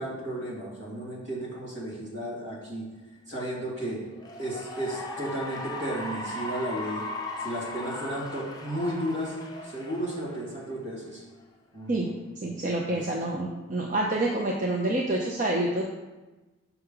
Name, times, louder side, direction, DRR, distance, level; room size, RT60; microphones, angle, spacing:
voice 1, 0.0-2.9 3.3-4.0 4.4-7.0 7.4-11.2 11.7-13.0, right 1 dB, 65° right, -5 dB, 2.2 m, -34 dB
Cheering / Applause, 4.1-10.8, left 2 dB, 20° left, 0.6 m, -38 dB
voice 2, 12.4-15.8, right 2 dB, 40° right, -1 dB, 0.5 m, -27 dB
5.6 x 5.6 x 3.8 m, 1.1 s
head